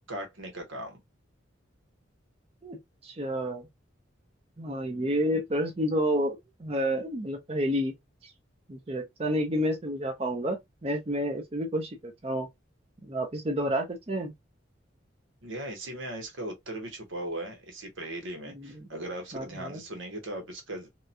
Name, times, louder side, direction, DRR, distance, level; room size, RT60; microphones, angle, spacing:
voice 1, 0.1-1.0 15.4-20.9, right 1 dB, 90° right, 1.2 m, -38 dB
voice 2, 2.6-3.7 4.6-7.9 8.2-8.3 8.7-12.5 13.0-14.3 18.5-18.9 19.3-19.8, equal, 30° right, 0.6 m, -30 dB
2.8 x 2.3 x 2.6 m
head